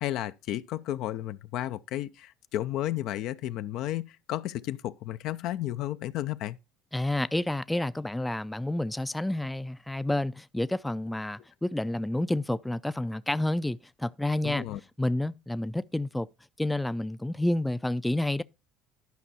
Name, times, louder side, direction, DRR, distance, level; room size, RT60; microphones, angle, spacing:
voice 1, 0.0-6.6 14.4-14.8, left 13 dB, 65° left, 0.5 m, -33 dB
voice 2, 6.9-14.7 15.0-16.3 16.6-18.4, left 1 dB, 10° left, 0.4 m, -29 dB
11.5 x 5.4 x 4.1 m
hypercardioid pair, 75°, 0 cm